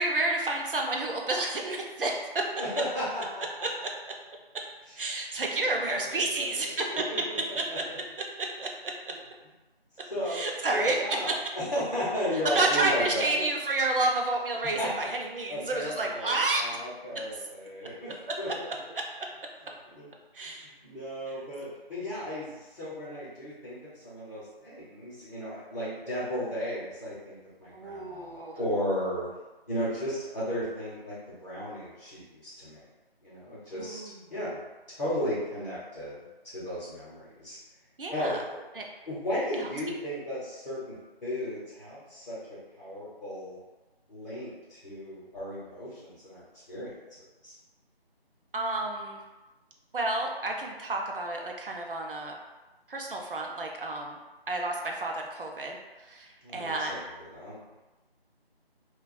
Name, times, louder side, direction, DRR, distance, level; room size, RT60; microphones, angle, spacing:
voice 1, 0.0-2.4 5.0-7.0 7.6-7.7 8.6-8.7 10.3-11.3 12.4-16.6 20.3-20.7 27.7-28.6 33.7-34.1 38.0-38.4 38.8-38.9 39.6-39.7 48.5-49.2 49.9-52.4 52.9-54.2 54.5-57.0, right 2 dB, 60° right, 1 dB, 0.5 m, -30 dB
voice 2, 2.6-3.7 4.9-5.4 5.6-6.7 7.1-8.0 10.1-10.4 10.7-13.4 14.6-15.1 15.5-18.9 19.9-20.1 20.8-29.3 29.7-32.8 33.2-34.6 35.0-36.1 36.4-37.6 38.1-38.4 39.1-41.0 41.2-43.6 44.1-47.5 56.4-57.6, equal, 40° left, -10 dB, 0.8 m, -35 dB
2.3 x 2.2 x 2.5 m, 1.1 s
figure-of-eight pair, 175°, 31 cm